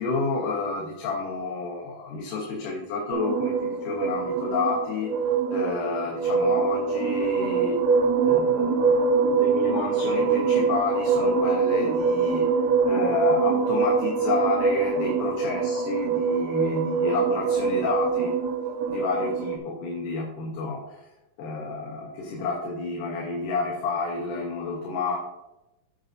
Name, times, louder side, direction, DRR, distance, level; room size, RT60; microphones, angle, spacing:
voice 1, 0.0-5.1 5.5-7.8 8.2-9.0 9.2-12.4 12.9-18.3 18.9-21.1 21.4-25.2, left 4 dB, 85° left, -3 dB, 2.8 m, -29 dB
sound 1, 3.1-19.6, right 5 dB, 90° right, 1.2 m, -24 dB
15.5 x 5.2 x 2.6 m, 0.94 s
omnidirectional pair, 3.6 m